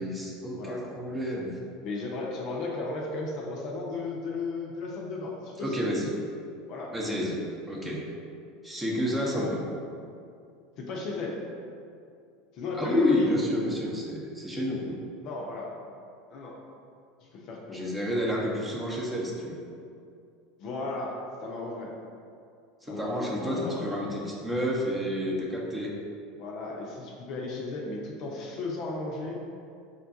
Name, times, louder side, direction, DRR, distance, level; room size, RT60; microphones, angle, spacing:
voice 1, 0.0-1.5 5.6-6.1 6.9-8.1 8.6-9.6 12.7-15.0 17.7-19.6 22.8-25.9, equal, 10° right, -3 dB, 0.7 m, -30 dB
voice 2, 0.6-0.9 1.8-5.9 6.7-7.0 9.2-9.6 10.8-11.4 12.5-13.3 15.2-15.7 16.3-16.6 17.2-17.9 20.6-22.0 22.8-23.9 26.3-29.4, left 3 dB, 50° left, -1 dB, 0.5 m, -34 dB
5.1 x 2.2 x 2.7 m, 2.4 s
figure-of-eight pair, 75°, 0 cm